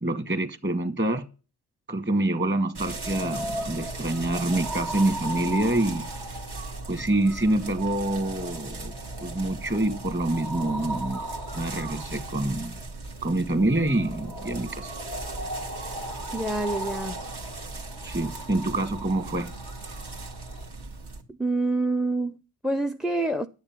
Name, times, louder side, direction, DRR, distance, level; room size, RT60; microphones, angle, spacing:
voice 1, 0.0-1.3 1.9-6.1 6.9-8.9 9.2-11.2 11.5-12.8 13.2-14.9 18.0-19.5, right 1 dB, 25° right, 1.7 m, -26 dB
sound 1, 2.7-21.2, right 2 dB, 65° right, 1.9 m, -36 dB
voice 2, 16.3-17.2 21.3-23.5, right 2 dB, ahead, 0.5 m, -27 dB
10.5 x 6.7 x 5.7 m
supercardioid pair, 45°, 43 cm